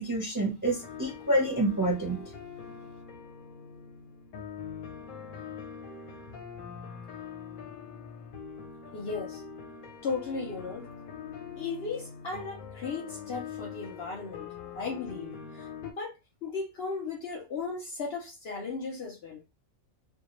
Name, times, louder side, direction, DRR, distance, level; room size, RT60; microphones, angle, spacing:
voice 1, 0.0-2.2, right 1 dB, 20° right, 0.5 m, -28 dB
sound 1, 0.6-15.9, left 6 dB, 90° left, 1.0 m, -43 dB
voice 2, 8.9-9.4 10.0-10.9 11.6-14.5 14.7-19.4, left 4 dB, 60° left, 0.7 m, -36 dB
2.2 x 2.1 x 2.9 m
omnidirectional pair, 1.4 m